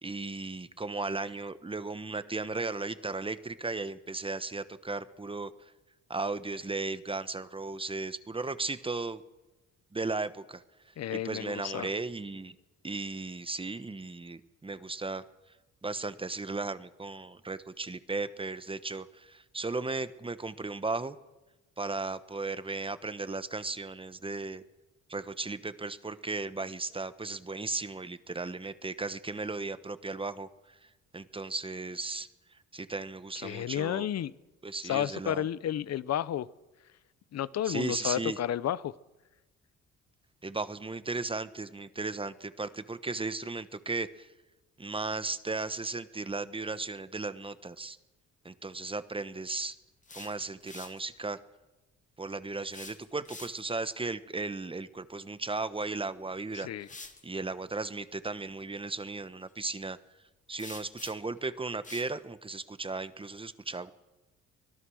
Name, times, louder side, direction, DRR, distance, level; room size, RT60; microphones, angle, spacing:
voice 1, 0.0-5.7 6.1-9.2 9.9-12.5 12.8-15.2 15.8-21.2 21.8-24.6 25.1-34.1 34.6-35.5 37.6-38.4 40.4-44.3 44.8-48.0 48.4-49.8 50.1-51.4 52.2-56.7 57.0-60.0 60.5-63.9, right 3 dB, 20° right, 13 dB, 1.1 m, -36 dB
voice 2, 11.0-11.9 33.4-34.3 34.8-36.5 37.3-38.9 56.5-56.9, left 11 dB, 60° left, 18 dB, 0.8 m, -32 dB
sound 1, 49.8-51.0 52.6-53.8 55.9-56.0 56.8-57.2 60.6-61.4 61.8-62.1, left 3 dB, 25° left, 2.1 m, -47 dB
24.5 x 18.0 x 6.4 m, 1.1 s
cardioid pair, 90°, 30 cm